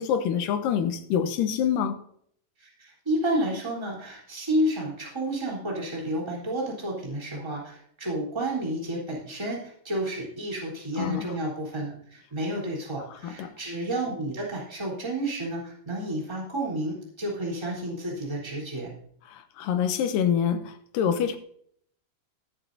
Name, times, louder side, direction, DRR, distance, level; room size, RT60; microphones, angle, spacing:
voice 1, 0.0-2.0 11.0-11.3 13.2-13.5 19.3-21.4, left 8 dB, 75° left, 2.4 m, -26 dB
voice 2, 2.6-18.9, right 1 dB, 5° right, 3.2 m, -31 dB
20.5 x 7.3 x 2.7 m
omnidirectional pair, 4.3 m